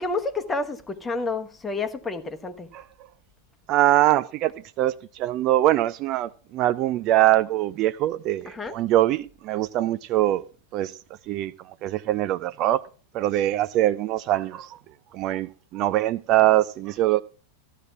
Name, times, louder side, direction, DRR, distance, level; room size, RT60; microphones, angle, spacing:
voice 1, 0.0-2.7 8.5-8.8, left 3 dB, 15° left, 1.1 m, -29 dB
voice 2, 3.7-4.5 4.8-10.4 10.7-10.9 11.3-12.8 13.1-14.8 15.1-17.2, right 14 dB, 40° right, 0.4 m, -23 dB
15.0 x 12.0 x 2.4 m
figure-of-eight pair, 90°, 0 cm